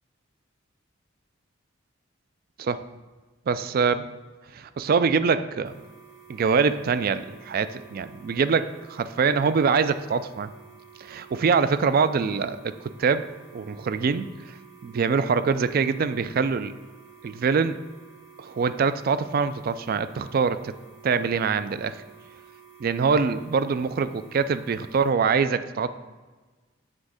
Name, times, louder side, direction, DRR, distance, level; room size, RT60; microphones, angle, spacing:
voice 1, 3.5-4.1 4.5-5.8 6.3-10.5 11.0-13.2 13.5-16.7 17.2-17.8 18.4-20.7 21.0-22.0 22.8-25.9, right 5 dB, 50° right, 13 dB, 0.3 m, -24 dB
sound 1, 5.6-25.1, right 7 dB, 85° right, 2.5 m, -51 dB
7.5 x 3.5 x 6.3 m, 1.3 s
head